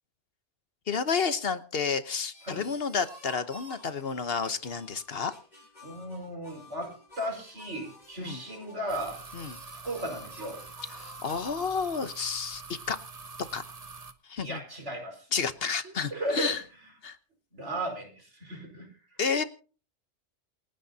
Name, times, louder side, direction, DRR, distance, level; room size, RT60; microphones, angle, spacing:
voice 1, 0.9-5.3 8.2-8.4 9.3-9.6 10.9-12.6 12.9-13.0 13.5-13.6 14.2-14.6 15.3-16.6 17.0-17.2 19.2-19.4, left 5 dB, 60° left, 11 dB, 1.2 m, -30 dB
sound 1, 2.3-11.5, left 1 dB, 35° left, 8.4 m, -51 dB
voice 2, 5.8-9.2 9.8-10.6 14.4-15.3 15.8-16.6 17.5-18.9, right 1 dB, 85° right, 2 dB, 5.4 m, -36 dB
sound 2, 8.9-14.1, right 4 dB, 35° right, 1.1 m, -45 dB
28.0 x 10.0 x 2.8 m, 0.38 s
omnidirectional pair, 1.2 m